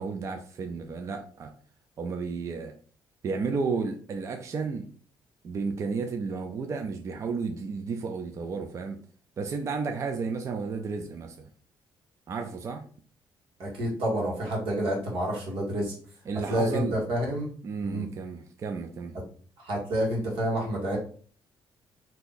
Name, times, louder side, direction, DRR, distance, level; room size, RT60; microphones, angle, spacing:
voice 1, 0.0-1.5 2.0-2.7 3.2-4.9 5.4-9.0 9.4-11.5 12.3-12.8 16.3-17.0 17.6-19.2, right 4 dB, 35° right, 0.4 m, -32 dB
voice 2, 13.6-15.9 16.5-17.5 17.8-18.1 19.6-21.0, right 1 dB, 90° right, 1.5 m, -28 dB
2.8 x 2.5 x 3.7 m
cardioid pair, 155°, 9 cm